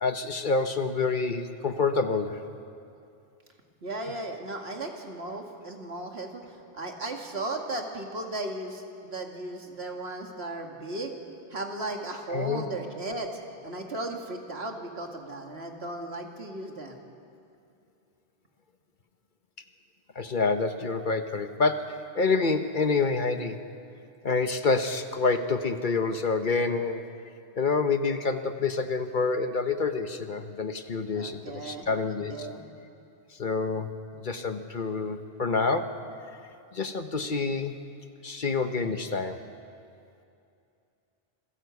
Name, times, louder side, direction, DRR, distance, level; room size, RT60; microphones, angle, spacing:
voice 1, 0.0-2.4 12.3-12.6 20.1-23.6 24.2-27.0 27.6-32.5 33.3-36.0 36.7-37.8 38.2-39.4, left 4 dB, 50° left, 8 dB, 1.1 m, -27 dB
voice 2, 3.8-6.4 6.7-11.1 11.5-17.0 31.1-32.6, right 2 dB, 70° right, 2 dB, 2.4 m, -36 dB
26.5 x 16.0 x 8.2 m, 2.6 s
omnidirectional pair, 1.1 m